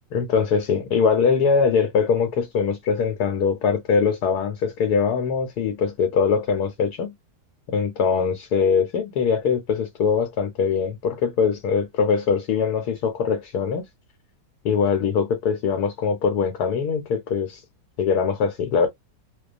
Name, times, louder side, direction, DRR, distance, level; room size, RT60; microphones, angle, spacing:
voice 1, 0.1-7.1 7.7-13.9 14.6-17.6 18.0-18.9, left 6 dB, 75° left, 1.2 m, -22 dB
2.4 x 2.3 x 2.4 m
omnidirectional pair, 1.7 m